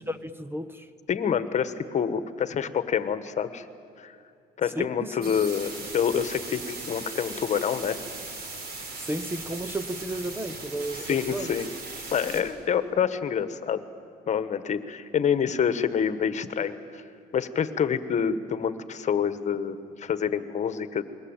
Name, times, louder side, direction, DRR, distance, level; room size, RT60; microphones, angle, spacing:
voice 1, 0.0-0.9 4.6-5.4 9.0-11.5, right 1 dB, 15° right, 13 dB, 1.0 m, -33 dB
voice 2, 1.1-3.7 4.0-4.2 4.6-8.0 11.1-11.7 12.1-13.8 14.3-17.0 17.3-21.0, left 7 dB, 45° left, 12 dB, 1.5 m, -27 dB
sound 1, 5.2-12.4, right 3 dB, 65° right, 5.1 m, -38 dB
29.0 x 22.0 x 9.0 m, 2.5 s
cardioid pair, 110°, 17 cm